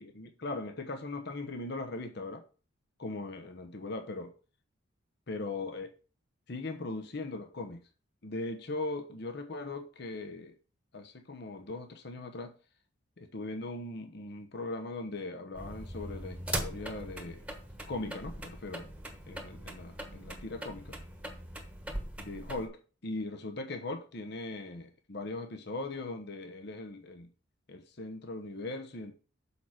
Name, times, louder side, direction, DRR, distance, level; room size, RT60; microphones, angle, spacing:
voice 1, 0.0-2.4 3.0-4.3 5.3-5.9 6.5-7.8 8.2-10.6 10.9-12.5 13.2-17.4 17.9-18.8 19.3-20.9 22.2-27.3 27.7-29.1, left 2 dB, 55° left, 1.0 m, -39 dB
sound 1, 15.5-22.7, right 1 dB, 5° right, 1.2 m, -41 dB
7.0 x 4.9 x 5.9 m
head